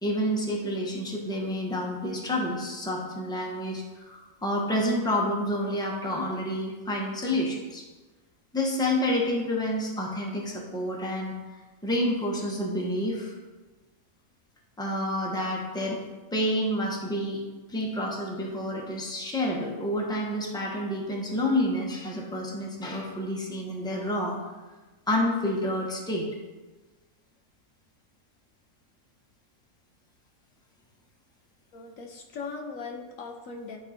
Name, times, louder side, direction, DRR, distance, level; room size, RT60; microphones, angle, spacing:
voice 1, 0.0-7.8 8.5-11.3 11.8-13.3 14.8-16.0 16.3-17.4 17.7-24.4 25.1-26.3, left 1 dB, 5° left, -2 dB, 1.1 m, -29 dB
voice 2, 31.7-33.8, left 4 dB, 70° left, 3 dB, 1.2 m, -39 dB
11.5 x 3.9 x 4.4 m, 1.2 s
omnidirectional pair, 1.5 m